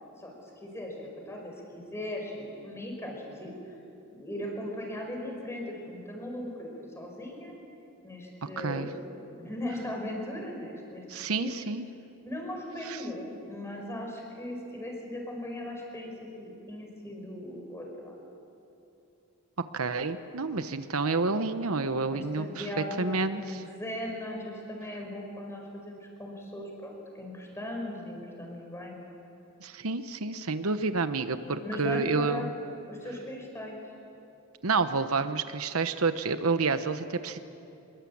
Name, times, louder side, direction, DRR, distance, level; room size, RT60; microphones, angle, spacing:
voice 1, 0.2-3.8 4.1-6.7 7.0-7.5 8.0-11.5 12.2-18.1 22.1-29.0 31.6-32.4 32.9-33.9, left 1 dB, 10° left, 0 dB, 5.2 m, -38 dB
voice 2, 8.6-8.9 11.1-11.8 19.7-22.7 23.0-23.6 29.6-32.5 34.6-37.4, right 4 dB, 75° right, 10 dB, 1.0 m, -29 dB
26.0 x 22.5 x 8.7 m, 2.8 s
head